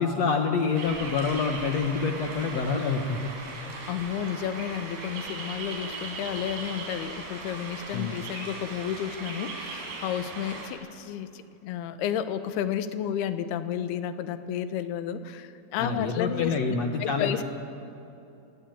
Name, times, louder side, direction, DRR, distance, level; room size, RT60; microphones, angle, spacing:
voice 1, 0.0-3.3 7.9-8.2 15.8-17.4, left 5 dB, 65° left, 4 dB, 1.7 m, -27 dB
sound 1, 0.7-10.7, right 3 dB, 75° right, 5.8 m, -38 dB
voice 2, 3.6-16.6 17.0-17.4, left 9 dB, 80° left, 11 dB, 3.0 m, -32 dB
27.5 x 19.5 x 9.0 m, 2.8 s
omnidirectional pair, 4.6 m